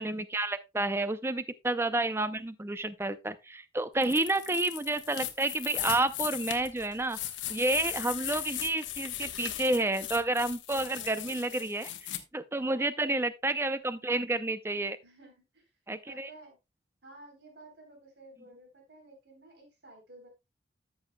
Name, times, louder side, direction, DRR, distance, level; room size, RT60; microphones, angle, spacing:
voice 1, 0.0-7.2 7.5-11.9 12.3-15.0 15.9-16.3, right 2 dB, 15° right, 0.5 m, -30 dB
sound 1, 4.0-12.2, left 12 dB, 90° left, 1.1 m, -38 dB
voice 2, 4.2-4.6 10.7-11.7 12.6-12.9 15.0-15.6 16.1-16.6 17.0-20.3, right 2 dB, 65° right, 3.7 m, -54 dB
13.5 x 7.0 x 2.2 m
head